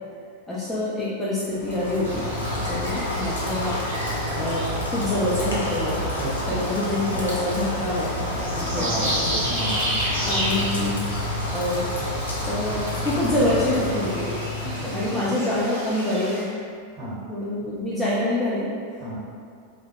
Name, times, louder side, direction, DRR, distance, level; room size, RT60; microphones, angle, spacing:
voice 1, 0.5-2.2 2.6-3.8 4.3-4.6 4.9-6.0 6.5-8.9 9.2-9.3 10.2-11.0 11.5-11.8 12.5-14.4 14.9-16.4 17.3-18.7, left 1 dB, 5° left, -9 dB, 0.4 m, -26 dB
Rain, 1.5-15.3, left 1 dB, 75° left, 0.4 m, -29 dB
sound 1, 2.0-16.4, right 1 dB, 60° right, 0.9 m, -33 dB
voice 2, 6.2-6.6 8.5-9.8 14.5-15.2 16.9-17.2 19.0-19.2, right 1 dB, 30° right, -9 dB, 1.1 m, -33 dB
2.2 x 2.0 x 2.9 m, 2.2 s
figure-of-eight pair, 90°, 0 cm